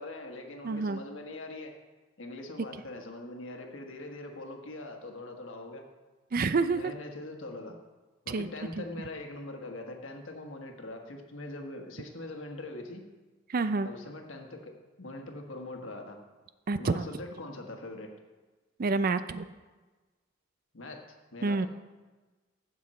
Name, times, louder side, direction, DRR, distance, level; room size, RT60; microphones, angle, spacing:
voice 1, 0.0-1.7 2.2-5.8 6.6-7.8 8.2-13.1 13.8-16.2 16.8-18.1 20.7-21.7, left 2 dB, 80° left, 3 dB, 1.4 m, -42 dB
voice 2, 0.6-1.0 6.3-6.9 8.3-8.5 8.8-8.9 13.5-13.9 16.7-17.1 18.8-19.5 21.4-21.7, right 3 dB, 45° right, 12 dB, 0.4 m, -28 dB
15.0 x 6.2 x 4.3 m, 1.3 s
head